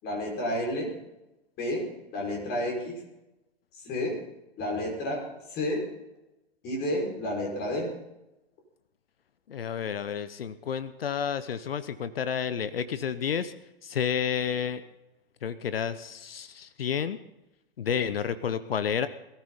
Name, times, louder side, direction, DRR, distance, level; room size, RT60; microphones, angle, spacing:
voice 1, 0.0-0.9 1.6-1.8 2.1-3.0 3.7-4.2 4.6-5.8 6.6-7.9, left 1 dB, 30° left, -1 dB, 5.4 m, -30 dB
voice 2, 9.5-13.5 13.8-14.8 15.4-17.2 17.8-19.1, left 7 dB, 65° left, 14 dB, 0.9 m, -30 dB
22.0 x 14.0 x 4.0 m, 0.95 s
figure-of-eight pair, 100°, 31 cm